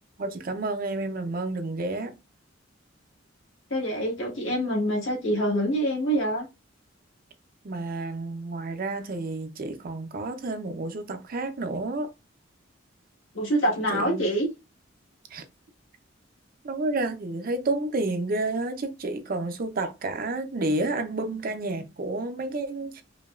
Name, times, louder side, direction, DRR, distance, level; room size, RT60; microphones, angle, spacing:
voice 1, 0.2-2.1 7.6-12.1 13.9-14.3 15.3-15.4 16.6-23.0, right 2 dB, 45° right, 0.5 m, -30 dB
voice 2, 3.7-6.4 13.3-14.5, right 1 dB, 75° left, 1.6 m, -25 dB
5.0 x 2.3 x 2.4 m
head